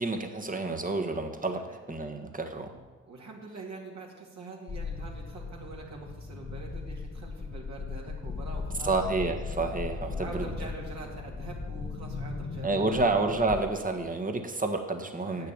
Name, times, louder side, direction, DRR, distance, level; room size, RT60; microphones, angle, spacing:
voice 1, 0.0-1.6 1.9-2.7 8.8-10.5 12.6-15.5, right 3 dB, 25° right, 4 dB, 1.5 m, -29 dB
voice 2, 2.7-8.9 10.1-13.0 15.2-15.5, right 3 dB, 55° right, -3 dB, 2.3 m, -44 dB
sound 1, 4.7-14.0, left 4 dB, 35° left, 1.3 m, -38 dB
8.3 x 6.9 x 6.8 m, 1.3 s
hypercardioid pair, 45°, 34 cm